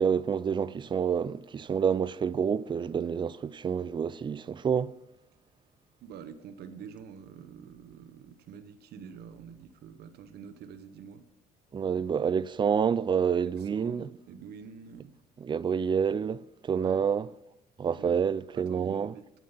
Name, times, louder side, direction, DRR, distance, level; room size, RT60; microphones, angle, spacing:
voice 1, 0.0-4.9 11.7-14.1 15.4-17.3 17.8-19.1, right 7 dB, 30° right, 0.4 m, -28 dB
voice 2, 6.0-11.3 13.4-15.1 16.7-17.1 18.0-19.2, right 7 dB, 70° right, 0.9 m, -47 dB
9.9 x 9.2 x 5.7 m
cardioid pair, 110°, 17 cm